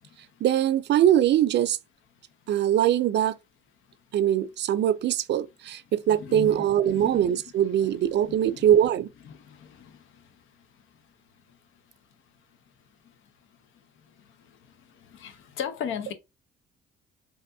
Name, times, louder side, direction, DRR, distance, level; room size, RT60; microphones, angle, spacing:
voice 1, 0.4-1.8 2.5-3.4 4.1-9.1, right 11 dB, 60° right, 0.4 m, -22 dB
voice 2, 6.2-7.3 8.3-8.7 9.3-9.6 15.2-16.1, left 8 dB, 85° left, 0.7 m, -36 dB
3.4 x 2.5 x 2.6 m
cardioid pair, 90°, 20 cm